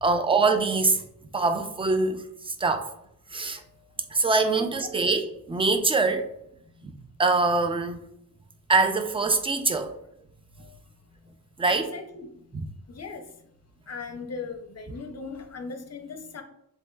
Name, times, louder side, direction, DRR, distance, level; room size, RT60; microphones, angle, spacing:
voice 1, 0.0-1.0 1.3-2.9 3.3-3.6 4.1-6.3 6.8-6.9 7.2-8.0 8.7-10.0 11.6-11.9 12.5-12.7, right 3 dB, 15° right, 0.3 m, -24 dB
voice 2, 4.5-4.9 11.6-12.3 12.9-13.2 13.9-16.4, left 4 dB, 40° left, 0.6 m, -38 dB
7.4 x 2.7 x 2.3 m
wide cardioid pair, 140°, 39 cm